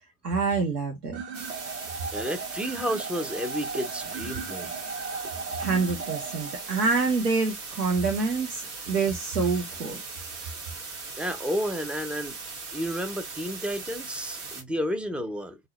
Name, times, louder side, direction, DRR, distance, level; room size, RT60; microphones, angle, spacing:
voice 1, 0.2-1.2 5.6-10.0, right 4 dB, 85° right, 0.9 m, -26 dB
sound 1, 1.1-7.1, right 4 dB, 30° right, 0.9 m, -37 dB
sound 2, 1.3-14.6, right 4 dB, 65° right, 1.5 m, -39 dB
voice 2, 2.1-4.7 11.1-12.4 12.7-15.6, equal, ahead, 0.5 m, -31 dB
3.6 x 2.3 x 2.9 m
figure-of-eight pair, 65°, 47 cm